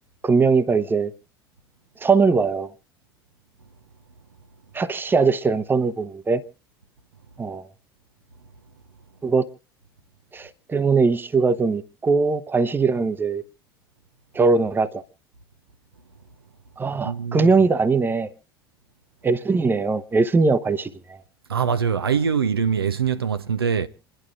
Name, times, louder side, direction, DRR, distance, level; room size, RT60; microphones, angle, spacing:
voice 1, 0.2-1.1 2.0-2.7 4.7-6.4 7.4-7.7 9.2-9.5 10.3-13.4 14.3-15.0 16.8-18.3 19.2-21.2, right 4 dB, 15° right, 0.9 m, -21 dB
voice 2, 17.0-17.5 21.5-23.9, right 7 dB, 80° right, 0.7 m, -23 dB
28.0 x 11.5 x 2.5 m
figure-of-eight pair, 70°, 13 cm